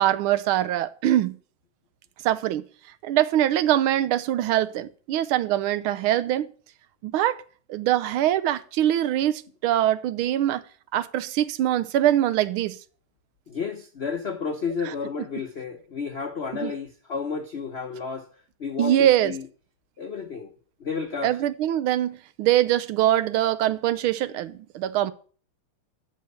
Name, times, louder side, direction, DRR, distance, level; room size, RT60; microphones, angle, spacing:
voice 1, 0.0-1.3 2.2-2.7 3.0-6.5 7.0-7.4 7.7-10.6 10.9-12.8 16.6-16.7 18.8-19.3 21.2-25.1, right 12 dB, 75° right, 1.5 m, -23 dB
voice 2, 13.5-19.5 20.0-20.5 20.8-21.4, left 5 dB, 90° left, 0.5 m, -32 dB
13.0 x 4.5 x 8.0 m
omnidirectional pair, 2.4 m